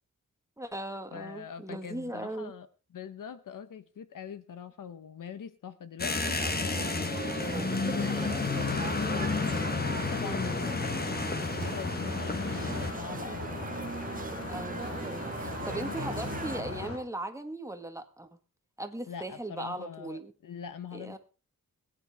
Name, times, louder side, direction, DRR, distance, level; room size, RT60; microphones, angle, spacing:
voice 1, 0.6-2.5 10.2-10.7 14.3-18.3 18.8-20.3 20.9-21.2, right 1 dB, 10° right, 6 dB, 1.6 m, -38 dB
voice 2, 1.1-2.7 2.9-7.2 7.9-9.3 9.9-13.9 15.5-16.0 19.1-21.2, left 8 dB, 85° left, 12 dB, 1.2 m, -43 dB
sound 1, 6.0-12.9, left 4 dB, 30° left, 1.2 m, -31 dB
sound 2, 6.2-16.6, right 5 dB, 25° right, 0.5 m, -40 dB
sound 3, 8.5-17.0, left 2 dB, 50° left, 4.8 m, -38 dB
21.5 x 9.1 x 3.5 m, 0.36 s
wide cardioid pair, 120°, 31 cm